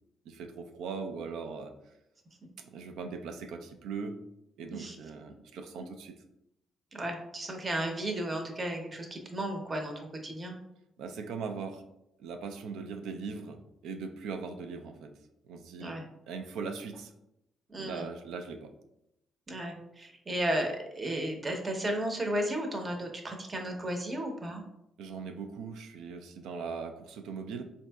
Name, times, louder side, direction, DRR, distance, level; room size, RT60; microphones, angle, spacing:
voice 1, 0.3-1.7 2.6-4.2 4.6-6.2 11.0-11.8 12.2-15.2 15.4-16.0 16.3-17.1 17.8-18.7 25.0-27.6, right 5 dB, 85° right, 6 dB, 0.4 m, -40 dB
voice 2, 6.9-10.6 15.8-16.0 17.7-18.0 19.5-24.6, right 1 dB, 30° right, 3 dB, 0.7 m, -34 dB
3.9 x 2.6 x 2.2 m, 0.84 s
cardioid pair, 90°, 0 cm